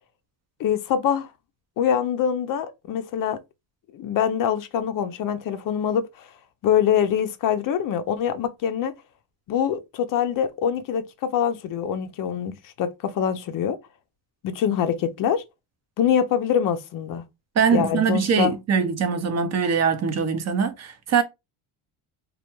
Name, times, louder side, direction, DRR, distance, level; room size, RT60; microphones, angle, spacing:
voice 1, 0.6-1.3 1.8-3.4 3.9-6.3 6.6-8.9 9.5-13.8 14.4-15.4 16.0-17.2 17.7-18.6, left 8 dB, 45° left, 0.4 m, -24 dB
voice 2, 17.6-21.2, right 6 dB, 35° right, 0.5 m, -22 dB
2.3 x 2.1 x 2.9 m
supercardioid pair, 95°, 50 cm